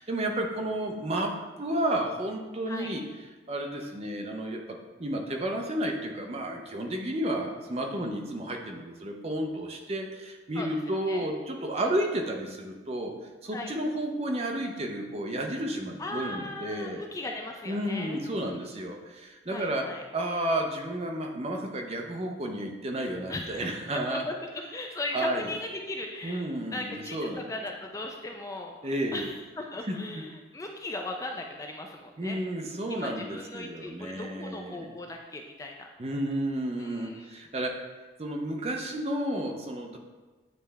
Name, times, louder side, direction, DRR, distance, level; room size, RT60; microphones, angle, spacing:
voice 1, 0.0-3.0 3.5-13.1 13.4-17.1 17.7-19.9 20.1-24.2 25.1-25.5 26.2-27.5 28.8-29.3 29.9-30.2 32.2-34.9 36.0-37.8 38.2-40.0, right 1 dB, 30° right, 2 dB, 0.6 m, -32 dB
voice 2, 10.6-11.3 11.8-11.9 13.5-13.7 16.0-18.2 18.4-18.7 19.5-20.0 23.3-23.6 24.1-24.3 24.7-26.5 26.7-32.4 32.9-35.9 36.8-37.3, left 2 dB, 15° left, 2 dB, 0.3 m, -38 dB
9.1 x 3.3 x 3.4 m, 1.2 s
head